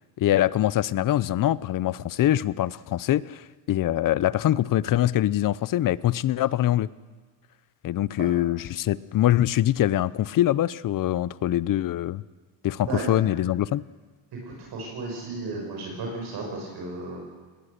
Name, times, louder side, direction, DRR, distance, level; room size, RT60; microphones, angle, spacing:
voice 1, 0.2-6.9 7.8-12.2 12.6-13.8, left 13 dB, 50° left, 19 dB, 0.6 m, -24 dB
voice 2, 14.4-17.2, right 3 dB, 60° right, -1 dB, 5.6 m, -34 dB
21.5 x 19.0 x 6.6 m, 1.4 s
cardioid pair, 130°, 42 cm